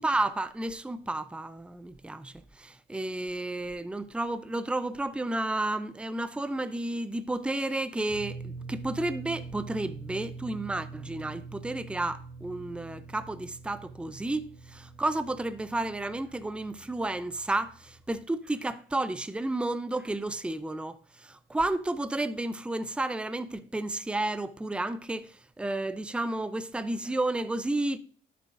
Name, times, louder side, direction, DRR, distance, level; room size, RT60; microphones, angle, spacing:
voice 1, 0.0-28.0, right 2 dB, 5° right, 0.5 m, -32 dB
sound 1, 8.1-18.1, right 4 dB, 10° left, 2.1 m, -44 dB
11.5 x 6.8 x 2.5 m
cardioid pair, 90°, 20 cm